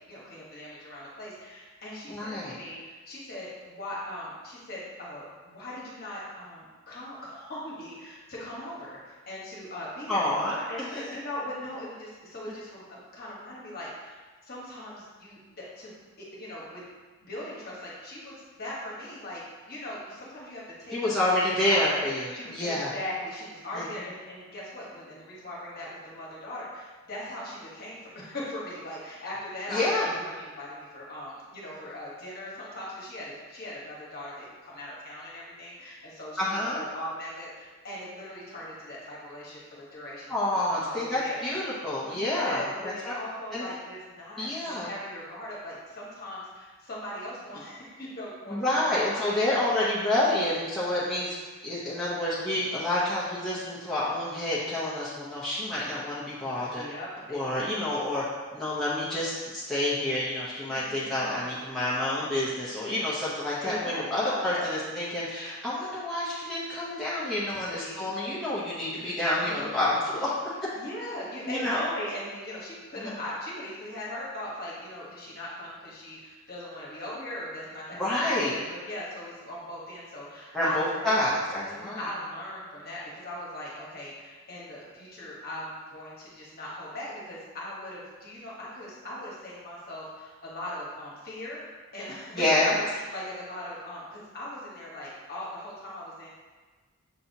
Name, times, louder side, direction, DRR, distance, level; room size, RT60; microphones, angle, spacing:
voice 1, 0.1-10.3 10.7-16.8 17.2-21.1 21.6-40.4 40.7-41.4 42.0-48.6 48.9-49.7 56.5-58.0 60.7-61.7 63.6-64.7 67.7-68.1 68.9-69.9 70.8-80.8 81.6-91.6 91.9-96.3, left 1 dB, 45° left, -5 dB, 1.1 m, -39 dB
voice 2, 2.1-2.5 10.1-10.6 10.9-11.2 20.9-22.9 23.7-23.8 29.7-30.0 36.4-36.8 40.3-43.1 43.5-43.7 44.4-44.9 48.5-51.3 51.6-56.8 57.3-58.2 58.5-70.3 71.5-71.9 73.0-73.1 77.9-78.6 80.5-82.1 92.3-92.7, left 1 dB, ahead, -10 dB, 0.6 m, -28 dB
6.8 x 2.7 x 2.7 m, 1.3 s
head